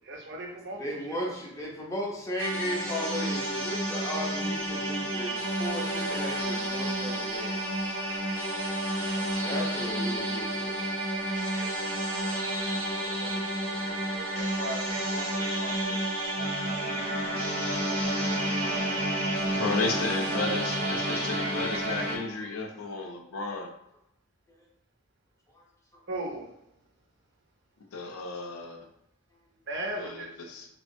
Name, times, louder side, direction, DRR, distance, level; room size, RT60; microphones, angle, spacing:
voice 1, 0.0-0.8 1.1-1.3 4.0-4.5 11.4-11.7 13.2-16.0 18.0-19.1 26.1-26.5 29.7-30.3, right 1 dB, 55° right, 1 dB, 0.5 m, -40 dB
voice 2, 0.8-7.6 9.1-10.8, equal, 15° left, -3 dB, 0.5 m, -35 dB
sound 1, 2.4-22.2, right 1 dB, 75° right, 0.9 m, -30 dB
voice 3, 19.5-23.7 27.9-28.8 30.0-30.7, left 3 dB, 80° left, 3 dB, 0.5 m, -33 dB
2.8 x 2.3 x 2.5 m, 0.79 s
head